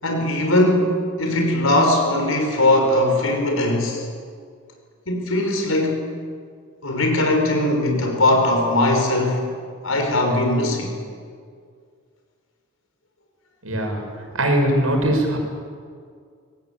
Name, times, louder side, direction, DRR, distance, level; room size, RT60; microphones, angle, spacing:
voice 1, 0.0-4.0 5.1-6.0 6.8-9.5 9.8-11.0, left 1 dB, 80° left, 2 dB, 5.9 m, -20 dB
voice 2, 13.6-14.1 14.3-15.4, right 1 dB, 80° right, 3 dB, 6.0 m, -20 dB
24.5 x 18.5 x 9.0 m, 2.1 s
head